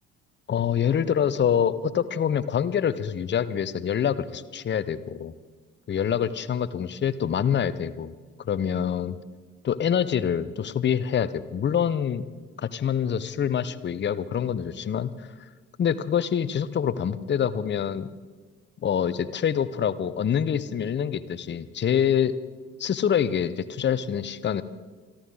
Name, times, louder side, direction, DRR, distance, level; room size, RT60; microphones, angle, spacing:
voice 1, 0.5-5.3 5.9-8.1 8.4-9.2 9.6-12.3 12.6-15.5 15.8-18.1 18.8-22.3 22.8-24.6, left 8 dB, 25° left, 14 dB, 0.8 m, -26 dB
26.5 x 11.5 x 3.9 m, 1.4 s
figure-of-eight pair, 50°, 40 cm